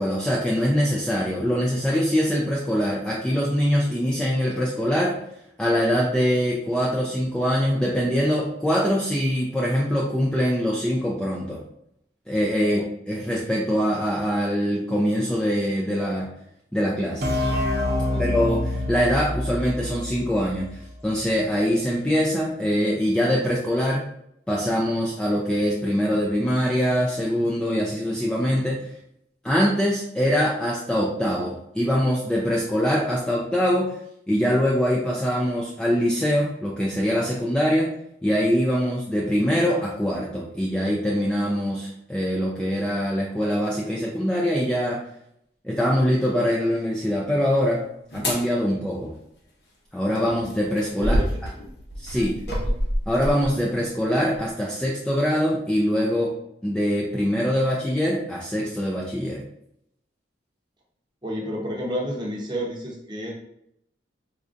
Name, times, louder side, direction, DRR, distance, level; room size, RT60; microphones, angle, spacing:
voice 1, 0.0-5.2 5.6-11.6 12.3-16.3 16.7-17.3 18.2-20.7 21.0-24.0 24.5-28.9 29.4-34.0 34.3-37.9 38.2-45.0 45.6-47.8 48.1-49.1 49.9-51.2 52.0-52.4 53.1-56.3 56.6-59.4, equal, 5° left, -4 dB, 0.3 m, -23 dB
sound 1, 17.2-20.8, left 1 dB, 55° right, 0.6 m, -26 dB
sound 2, 48.1-48.4 50.2-53.7 54.3-54.5, equal, 65° left, 0.8 m, -27 dB
voice 2, 61.2-63.3, equal, 25° right, -2 dB, 0.7 m, -30 dB
4.3 x 2.5 x 2.5 m, 0.73 s
head